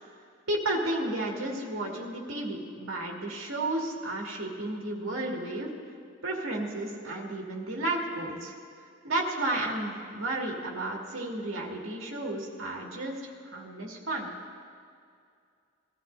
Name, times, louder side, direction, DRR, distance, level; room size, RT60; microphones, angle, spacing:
voice 1, 0.5-5.7 6.2-8.6 9.0-14.3, right 1 dB, 75° right, -1 dB, 2.1 m, -32 dB
20.0 x 14.0 x 2.7 m, 2.3 s
head